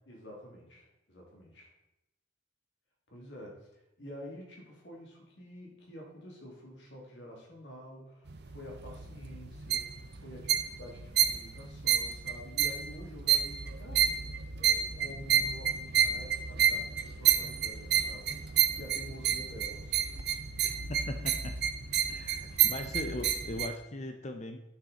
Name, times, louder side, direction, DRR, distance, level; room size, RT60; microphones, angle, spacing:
voice 1, 0.1-1.7 3.1-3.7 4.0-14.3 14.5-20.0, equal, 65° left, -2 dB, 2.7 m, -48 dB
sound 1, 8.3-23.7, right 9 dB, 55° right, 0.6 m, -30 dB
voice 2, 20.6-21.5 22.1-24.6, left 2 dB, 35° left, 6 dB, 0.6 m, -39 dB
9.6 x 6.4 x 4.1 m, 0.89 s
head